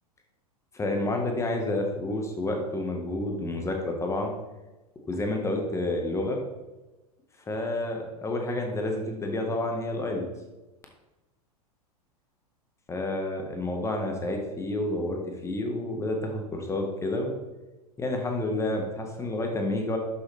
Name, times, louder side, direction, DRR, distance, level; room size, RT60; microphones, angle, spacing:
voice 1, 0.7-4.3 5.1-6.4 7.5-10.2 12.9-17.3 18.0-20.0, left 2 dB, 15° left, 2 dB, 1.6 m, -29 dB
11.5 x 6.8 x 3.5 m, 1.1 s
figure-of-eight pair, 95°, 20 cm